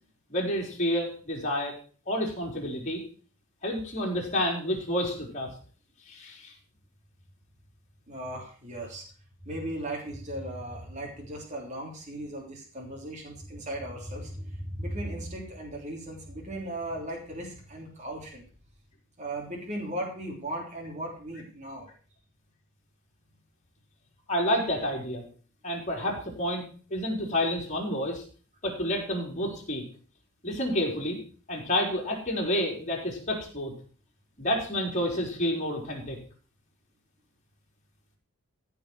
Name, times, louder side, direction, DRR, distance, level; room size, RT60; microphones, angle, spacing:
voice 1, 0.3-1.7 2.1-3.0 3.6-5.5 6.1-6.5 24.3-25.2 25.6-28.2 28.6-29.8 30.4-31.2 31.5-33.7 34.4-36.2, equal, 35° left, -1 dB, 4.2 m, -29 dB
voice 2, 8.1-9.0 9.4-18.4 19.2-21.9, right 1 dB, 35° right, -1 dB, 3.3 m, -37 dB
15.0 x 5.9 x 6.4 m, 0.41 s
head